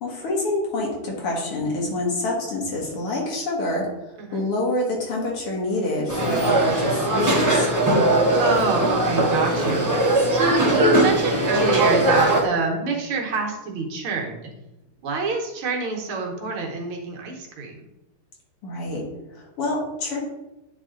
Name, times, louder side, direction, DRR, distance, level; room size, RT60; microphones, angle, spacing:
voice 1, 0.0-3.9 4.3-7.7 18.6-19.0 19.3-20.2, left 2 dB, 90° left, -2 dB, 2.6 m, -26 dB
sound 1, 6.1-12.4, right 1 dB, 25° right, 0.3 m, -20 dB
voice 2, 8.4-10.0 10.3-14.4 15.0-17.9, right 3 dB, 75° right, 0 dB, 2.0 m, -26 dB
9.8 x 3.3 x 3.8 m, 0.98 s
omnidirectional pair, 2.4 m